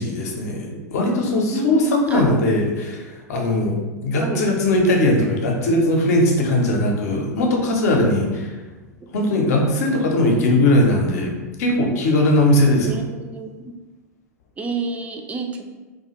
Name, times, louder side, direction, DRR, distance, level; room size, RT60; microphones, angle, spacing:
voice 1, 0.0-3.8 4.0-8.6 9.1-11.3 11.6-13.0, left 1 dB, 65° left, 1 dB, 0.6 m, -19 dB
voice 2, 1.4-2.5 4.2-4.5 12.8-13.7 14.6-15.7, right 3 dB, 15° right, 3 dB, 0.3 m, -29 dB
2.4 x 2.2 x 2.9 m, 1.2 s
hypercardioid pair, 90°, 9 cm